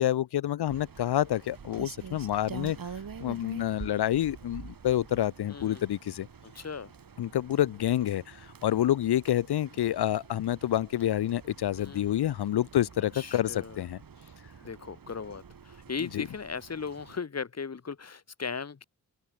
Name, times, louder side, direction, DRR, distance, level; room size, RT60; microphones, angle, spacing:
voice 1, 0.0-2.8 3.2-6.3 7.2-14.0 16.1-16.3, left 12 dB, 80° left, 1.0 m, -28 dB
Rain, 0.7-17.2, right 6 dB, 60° right, 4.2 m, -47 dB
voice 2, 5.5-5.9 6.4-6.9 11.7-12.1 13.1-13.8 14.6-18.8, left 5 dB, 40° left, 1.7 m, -37 dB
open air
supercardioid pair, 45°, 39 cm